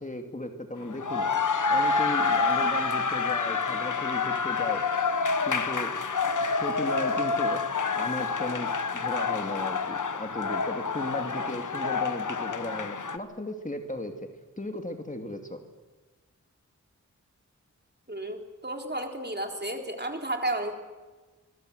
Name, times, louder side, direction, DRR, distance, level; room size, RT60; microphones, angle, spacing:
voice 1, 0.0-1.3 1.7-4.8 5.5-5.9 6.6-14.3 14.6-15.6, left 1 dB, 25° left, 5 dB, 2.4 m, -36 dB
sound 1, 0.8-13.2, left 4 dB, 75° left, 1.3 m, -28 dB
voice 2, 18.1-20.7, right 1 dB, 35° right, 3 dB, 3.7 m, -32 dB
25.5 x 21.0 x 8.1 m, 1.3 s
wide cardioid pair, 65°, 31 cm